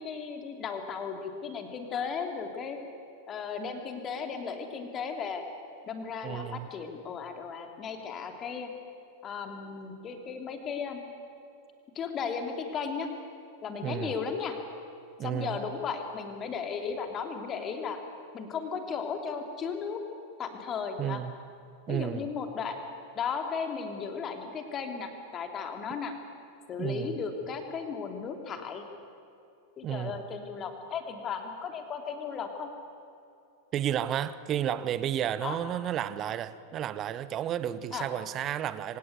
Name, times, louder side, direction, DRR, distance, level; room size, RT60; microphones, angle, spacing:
voice 1, 0.0-2.8 3.3-5.4 5.9-8.7 9.2-11.0 11.9-13.1 13.6-14.6 15.2-18.0 18.3-20.0 20.4-21.2 21.9-22.8 23.1-26.1 26.7-28.8 29.8-32.7 35.4-35.6 37.9-38.1, left 6 dB, 25° left, 5 dB, 3.0 m, -35 dB
voice 2, 6.2-6.7 13.8-14.1 15.2-15.6 21.0-21.3 21.9-22.2 26.8-27.2 29.8-30.2 33.7-39.0, right 10 dB, 30° right, 15 dB, 1.0 m, -32 dB
25.5 x 17.5 x 9.5 m, 2.6 s
figure-of-eight pair, 90°, 0 cm